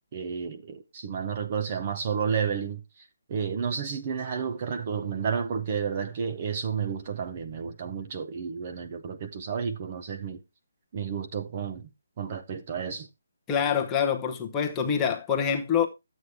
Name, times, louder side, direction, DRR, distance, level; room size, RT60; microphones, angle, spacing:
voice 1, 0.1-10.4 10.9-11.9 12.2-13.1, right 6 dB, 30° right, 0.7 m, -31 dB
voice 2, 13.5-15.9, left 7 dB, 10° left, 0.9 m, -25 dB
11.5 x 8.1 x 3.4 m
hypercardioid pair, 170°, 0 cm